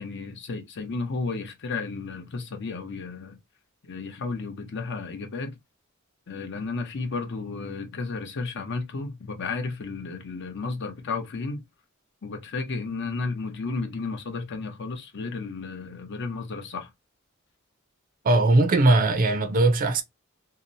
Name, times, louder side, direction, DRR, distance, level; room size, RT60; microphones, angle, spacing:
voice 1, 0.0-3.4 3.8-5.6 6.3-11.6 12.2-16.9, left 4 dB, 55° left, 0.6 m, -33 dB
voice 2, 18.2-20.0, right 2 dB, 40° right, 0.4 m, -19 dB
2.7 x 2.0 x 2.5 m
head